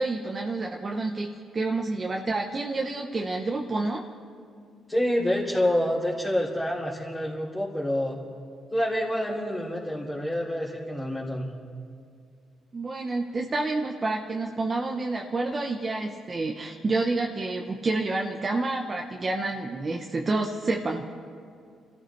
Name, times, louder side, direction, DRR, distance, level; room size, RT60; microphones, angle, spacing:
voice 1, 0.0-4.0 12.7-21.0, right 3 dB, 35° right, 1 dB, 1.0 m, -29 dB
voice 2, 4.9-8.2 8.7-11.5, left 1 dB, 15° left, -8 dB, 3.1 m, -27 dB
28.5 x 14.5 x 3.3 m, 2.3 s
cardioid pair, 90°, 0 cm